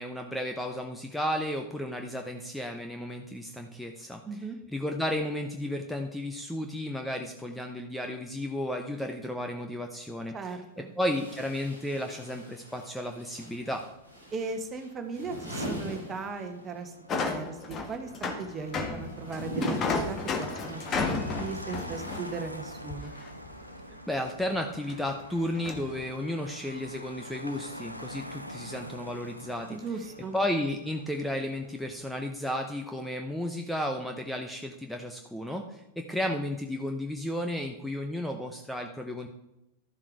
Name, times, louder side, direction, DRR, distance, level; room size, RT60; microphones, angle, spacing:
voice 1, 0.0-4.2 4.7-13.8 24.1-29.8 30.3-39.3, left 1 dB, 5° left, 4 dB, 0.9 m, -33 dB
voice 2, 4.2-4.6 10.3-11.0 14.3-21.1 21.4-23.1 29.7-30.4, right 4 dB, 25° right, 7 dB, 1.5 m, -37 dB
sound 1, 10.1-10.2 11.0-16.9 17.1-23.0, equal, 90° left, 3.0 m, -41 dB
Motor vehicle (road), 13.5-32.3, equal, 90° right, 0.9 m, -46 dB
sound 2, 17.1-23.5 23.9-24.0 24.5-25.1 25.4-26.0, left 4 dB, 30° left, 1.6 m, -33 dB
12.5 x 7.4 x 4.8 m, 0.88 s
figure-of-eight pair, 90°, 0 cm